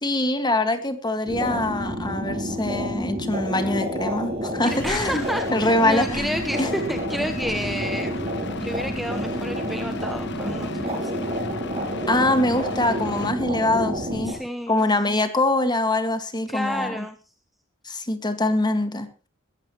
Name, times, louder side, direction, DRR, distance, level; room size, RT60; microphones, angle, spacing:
voice 1, 0.0-5.2 5.5-6.2 6.6-6.7 12.1-14.4 14.7-17.1 17.9-19.1, left 2 dB, 20° left, 8 dB, 1.8 m, -23 dB
sound 1, 1.2-14.3, equal, 30° right, 6.6 m, -29 dB
voice 2, 4.6-8.2 8.6-11.2 14.2-14.8 16.5-17.2, equal, ahead, 5 dB, 1.0 m, -31 dB
sound 2, 4.7-13.3, left 4 dB, 55° left, 1.6 m, -37 dB
20.5 x 14.5 x 3.1 m, 0.33 s
head